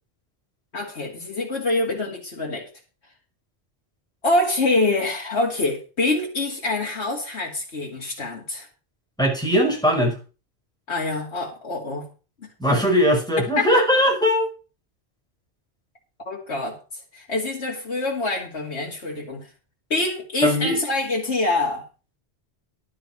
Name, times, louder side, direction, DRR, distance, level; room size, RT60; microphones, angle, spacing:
voice 1, 0.7-2.7 4.2-8.7 10.9-12.1 16.3-16.8 17.1-19.5 19.9-21.8, left 2 dB, 85° left, -2 dB, 2.6 m, -25 dB
voice 2, 9.2-10.1 12.6-14.5 20.4-20.8, equal, 5° left, -1 dB, 5.3 m, -19 dB
11.5 x 7.5 x 6.1 m, 0.34 s
omnidirectional pair, 1.1 m